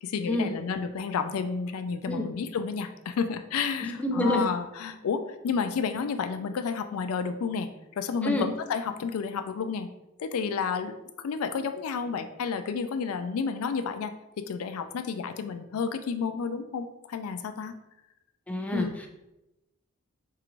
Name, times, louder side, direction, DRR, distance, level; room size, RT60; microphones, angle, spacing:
voice 1, 0.0-7.7 8.0-9.9 10.2-17.7 18.7-19.1, left 5 dB, 80° left, 8 dB, 0.4 m, -31 dB
voice 2, 3.8-4.5 8.2-8.5 18.5-19.1, left 1 dB, 5° left, 2 dB, 0.4 m, -27 dB
4.7 x 2.5 x 3.0 m, 0.92 s
head